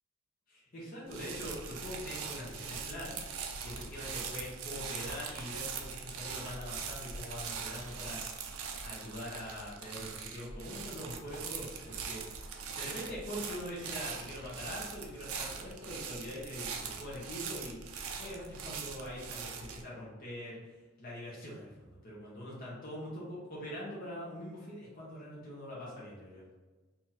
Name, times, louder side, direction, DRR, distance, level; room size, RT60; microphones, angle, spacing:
voice 1, 0.5-8.2 8.8-12.2 12.7-20.6 21.0-26.4, equal, 45° left, -6 dB, 1.1 m, -43 dB
sound 1, 1.1-19.8, right 6 dB, 85° right, 0.5 m, -42 dB
3.0 x 2.9 x 3.9 m, 1.2 s
head